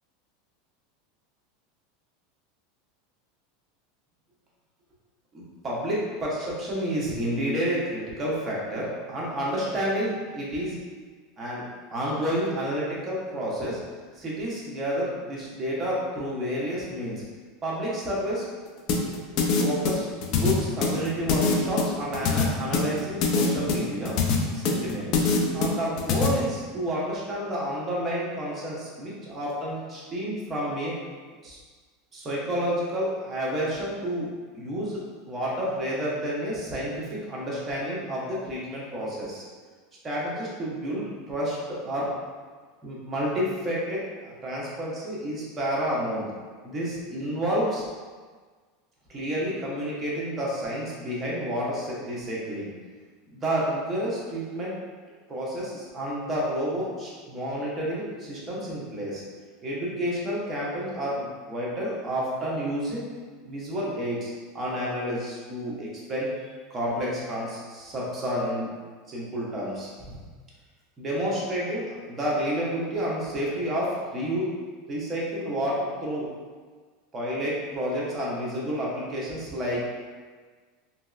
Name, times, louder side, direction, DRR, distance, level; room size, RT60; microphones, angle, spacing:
voice 1, 5.3-10.8 11.4-11.6 11.9-13.8 14.2-17.2 17.6-18.4 19.6-24.2 24.5-25.1 25.5-30.9 31.4-31.6 32.1-34.3 34.5-39.4 40.0-42.1 42.8-46.3 46.6-47.8 49.1-52.7 53.3-54.7 55.3-59.2 59.6-63.0 63.4-66.3 66.7-68.7 69.1-70.2 71.0-74.5 74.9-76.3 77.1-79.8, equal, 20° right, -6 dB, 0.8 m, -30 dB
sound 1, 18.9-26.3, left 5 dB, 50° left, 0.4 m, -24 dB
3.0 x 2.6 x 2.4 m, 1.5 s
supercardioid pair, 140°, 0 cm